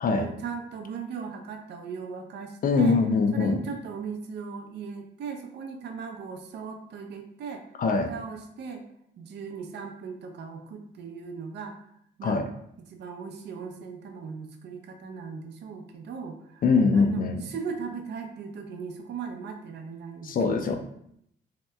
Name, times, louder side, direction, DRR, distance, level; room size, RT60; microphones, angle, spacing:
voice 1, 0.1-3.0 3.3-7.6 8.1-8.8 9.2-11.8 12.2-12.4 12.9-16.6 16.9-20.7, right 5 dB, 60° right, 4 dB, 0.5 m, -38 dB
voice 2, 2.6-3.6 7.8-8.1 12.2-12.5 16.6-17.4 20.2-20.8, left 4 dB, 45° left, 6 dB, 0.5 m, -23 dB
2.8 x 2.1 x 3.3 m, 0.72 s
cardioid pair, 90°, 20 cm